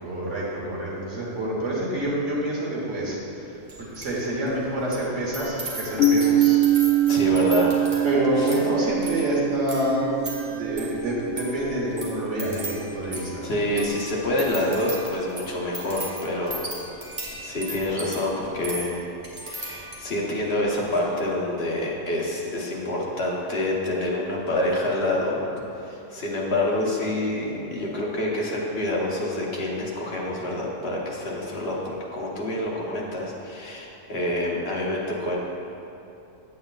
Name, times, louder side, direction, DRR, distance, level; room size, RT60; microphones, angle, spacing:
voice 1, 0.0-6.6 8.0-10.1 10.4-13.4, equal, 80° right, -6 dB, 1.8 m, -27 dB
sound 1, 3.7-4.2 4.5-20.2 20.7-21.0, right 2 dB, 40° right, 1.4 m, -37 dB
sound 2, 6.0-13.8, right 6 dB, 80° left, 1.1 m, -24 dB
voice 2, 7.1-8.0 8.4-8.5 13.4-16.6 17.4-19.0 19.4-25.5 25.7-35.4, left 1 dB, 55° left, -3 dB, 1.3 m, -27 dB
8.7 x 8.2 x 2.4 m, 2.9 s
omnidirectional pair, 1.3 m